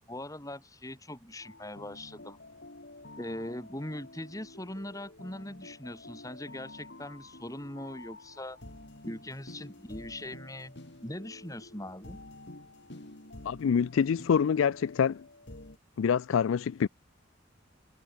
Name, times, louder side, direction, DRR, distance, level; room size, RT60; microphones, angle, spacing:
voice 1, 0.0-2.4 3.2-8.6 9.0-10.8 11.0-12.2, left 1 dB, 15° left, 4.6 m, -41 dB
sound 1, 1.4-15.8, left 2 dB, 60° left, 2.7 m, -49 dB
voice 2, 13.4-15.2 16.0-16.9, left 7 dB, 90° left, 0.4 m, -26 dB
head